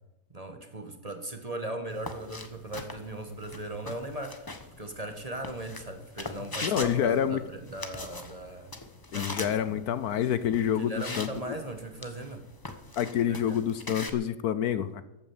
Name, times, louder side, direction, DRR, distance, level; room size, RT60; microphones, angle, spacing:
voice 1, 0.3-8.7 9.1-9.8 10.7-12.4 13.3-13.6, right 1 dB, 25° right, 6 dB, 1.3 m, -38 dB
sound 1, 1.9-14.1, left 2 dB, 15° left, 0.9 m, -42 dB
voice 2, 6.6-7.4 9.1-11.6 13.0-15.1, left 9 dB, 70° left, 13 dB, 1.1 m, -28 dB
14.5 x 8.9 x 7.2 m, 0.98 s
omnidirectional pair, 1.8 m